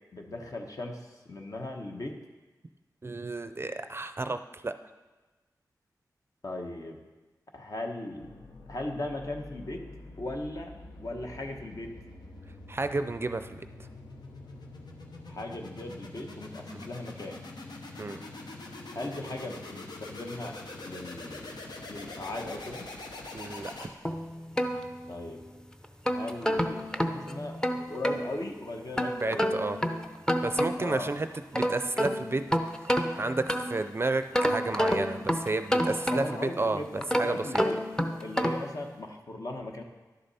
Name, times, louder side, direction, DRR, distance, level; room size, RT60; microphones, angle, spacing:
voice 1, 0.1-2.2 6.4-7.0 7.5-8.3 8.7-9.9 10.2-10.7 11.0-11.9 15.3-17.4 18.9-21.6 21.9-22.9 25.1-25.4 26.1-26.8 27.1-29.5 30.8-31.1 35.8-37.9 38.2-39.8, left 2 dB, 55° left, 2 dB, 1.2 m, -38 dB
voice 2, 3.0-4.7 12.7-13.6 16.7-16.8 18.0-18.2 23.3-23.9 29.2-29.8 30.4-31.3 31.5-32.4 33.1-37.6, right 3 dB, 35° right, 10 dB, 0.4 m, -31 dB
sound 1, 8.2-24.3, left 2 dB, 90° left, 1.0 m, -44 dB
sound 2, 24.1-25.4 25.8-28.3 29.0-31.0 31.4-33.9 34.3-36.5 37.0-38.8, equal, 10° left, 0.6 m, -29 dB
11.0 x 6.8 x 4.2 m, 1.2 s
wide cardioid pair, 70°, 7 cm